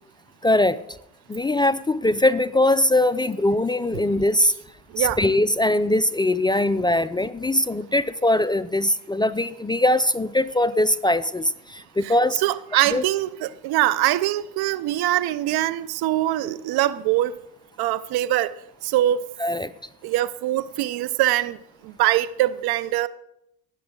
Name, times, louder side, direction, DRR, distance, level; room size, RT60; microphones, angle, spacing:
voice 1, 0.4-0.8 1.3-4.5 5.0-12.4 12.9-13.0 19.4-19.7, left 1 dB, 10° left, 0.4 m, -21 dB
voice 2, 12.0-17.4 17.8-18.5 18.8-19.2 20.0-21.6 21.8-23.1, right 14 dB, 70° right, 0.7 m, -23 dB
19.0 x 7.0 x 3.8 m
supercardioid pair, 80°, 39 cm